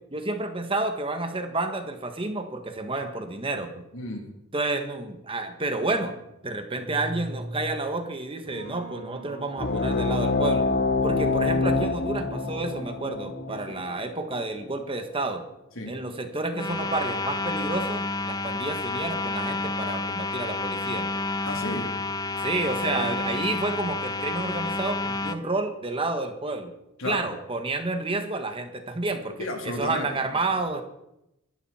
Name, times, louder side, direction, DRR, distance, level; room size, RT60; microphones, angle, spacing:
voice 1, 0.1-3.8 4.5-6.1 6.4-10.7 11.0-15.5 15.9-21.1 22.4-26.7 27.0-30.8, right 2 dB, 25° right, 7 dB, 1.4 m, -30 dB
voice 2, 3.9-4.3 13.7-13.8 15.7-16.0 21.4-21.9 22.9-23.3 27.0-27.3 29.4-30.1, left 1 dB, 70° left, 2 dB, 3.3 m, -33 dB
sound 1, 6.8-7.9 8.4-10.7 11.1-13.7, right 1 dB, 85° right, 4.3 m, -40 dB
sound 2, 9.6-14.7, left 3 dB, 50° left, 1.0 m, -26 dB
sound 3, 16.5-25.4, left 3 dB, 20° left, 0.7 m, -30 dB
24.0 x 12.0 x 4.4 m, 0.86 s
head